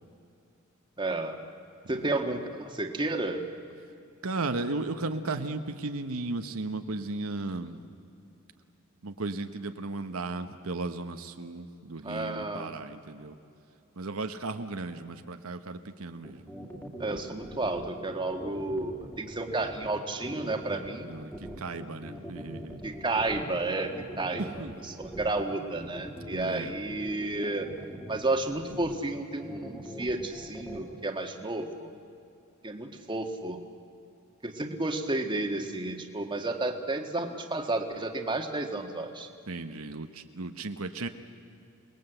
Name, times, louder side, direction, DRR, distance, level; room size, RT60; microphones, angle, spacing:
voice 1, 1.0-1.4 1.9-3.4 12.0-12.7 17.0-21.1 22.8-24.7 25.0-27.7 28.1-31.9 32.6-33.6 34.4-39.3, right 2 dB, 20° right, 4 dB, 1.6 m, -32 dB
voice 2, 4.2-7.8 9.0-13.4 14.0-16.5 21.0-22.9 24.4-24.8 26.3-26.8 39.5-41.1, right 3 dB, 75° right, 7 dB, 1.1 m, -35 dB
sound 1, 16.2-31.0, equal, 10° left, 2.5 m, -43 dB
28.5 x 20.0 x 8.0 m, 2.6 s
head